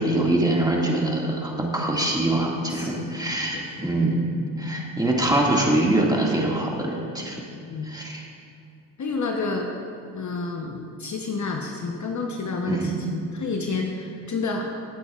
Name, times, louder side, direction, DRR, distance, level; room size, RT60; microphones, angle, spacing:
voice 1, 0.0-4.2 4.6-7.4 7.8-8.2 12.7-12.9, right 1 dB, 10° right, -2 dB, 2.0 m, -24 dB
voice 2, 2.7-3.1 3.5-3.6 7.5-7.9 9.0-9.7 10.1-14.7, left 4 dB, 40° left, 1 dB, 1.0 m, -29 dB
17.0 x 8.2 x 2.5 m, 2.5 s
supercardioid pair, 65°, 46 cm